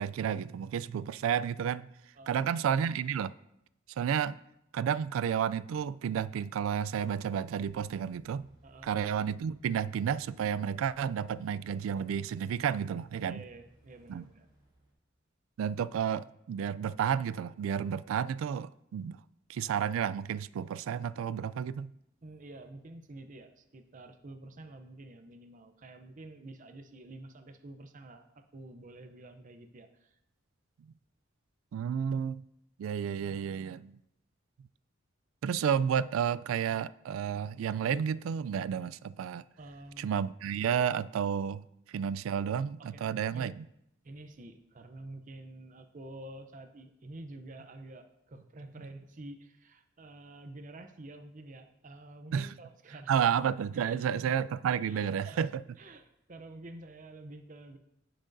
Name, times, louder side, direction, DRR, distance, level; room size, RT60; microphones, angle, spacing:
voice 1, 0.0-1.9 2.3-3.3 4.0-4.4 4.7-8.5 8.8-13.4 14.1-14.2 15.6-19.2 19.5-21.9 31.7-32.4 32.8-34.0 35.4-39.4 40.0-43.6 52.3-52.5 53.1-55.5, right 8 dB, 85° right, 0.3 m, -31 dB
sound 1, 7.5-14.9, right 1 dB, 20° right, 2.5 m, -64 dB
voice 2, 13.2-14.5 22.2-30.2 39.6-40.2 42.8-43.6 44.0-53.2 53.7-54.2 54.9-57.8, right 2 dB, 40° right, 0.6 m, -49 dB
16.5 x 6.1 x 2.6 m
head